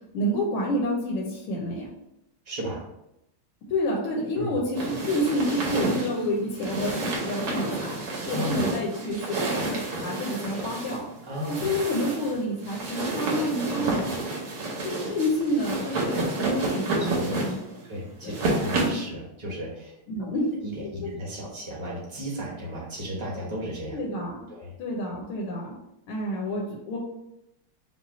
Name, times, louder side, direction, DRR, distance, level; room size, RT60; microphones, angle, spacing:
voice 1, 0.1-1.9 3.7-11.0 11.5-14.1 14.8-17.8 18.2-18.4 20.1-20.5 23.9-24.4 24.8-25.7 26.1-27.0, left 1 dB, 80° left, -3 dB, 1.7 m, -29 dB
voice 2, 2.4-2.8 4.4-4.5 8.3-8.7 11.3-11.8 17.0-17.4 17.9-20.0 20.6-24.0 24.5-24.8, equal, 20° right, -5 dB, 1.0 m, -34 dB
sound 1, 4.7-19.1, right 2 dB, 90° right, 2.1 m, -30 dB
5.4 x 2.2 x 4.1 m, 0.82 s
omnidirectional pair, 2.3 m